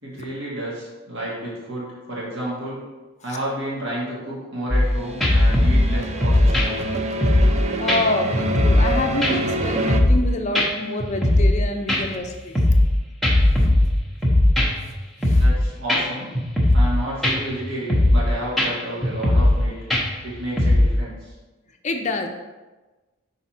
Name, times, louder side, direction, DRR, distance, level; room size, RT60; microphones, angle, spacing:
voice 1, 0.0-2.8 3.2-6.7 15.3-16.3 16.7-19.7 20.2-21.3, right 1 dB, 65° right, -6 dB, 1.8 m, -31 dB
sound 1, 4.7-4.9 5.2-7.6 7.9-8.0 8.3-8.9 9.2-10.3 10.6-10.7 11.0-11.6 11.9-12.9 13.2-14.9 15.2-15.6 15.9-16.0 16.3-16.9 17.2-17.6 17.9-18.3 18.6-18.7 19.0-19.6 19.9-20.9, left 1 dB, ahead, 0.8 m, -18 dB
sound 2, 4.9-10.0, right 2 dB, 30° right, 0.4 m, -27 dB
voice 2, 7.8-12.6 15.3-15.4 21.8-22.3, left 2 dB, 35° left, 4 dB, 0.5 m, -26 dB
5.8 x 4.1 x 4.3 m, 1.2 s
head